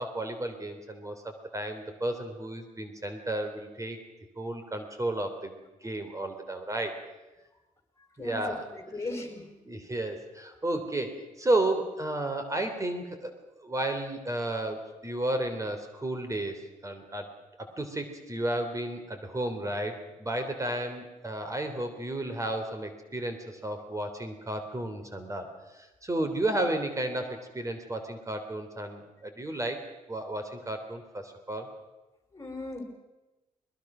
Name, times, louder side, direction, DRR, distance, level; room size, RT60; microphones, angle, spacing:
voice 1, 0.0-4.0 4.4-5.5 5.8-7.0 8.2-8.6 9.6-13.3 13.6-17.3 17.6-25.5 25.7-29.8 30.1-31.7, right 1 dB, 25° right, 7 dB, 3.2 m, -32 dB
voice 2, 8.2-9.5 32.3-32.8, left 2 dB, 20° left, 4 dB, 5.1 m, -38 dB
21.5 x 21.0 x 6.2 m, 1.1 s
cardioid pair, 75°, 14 cm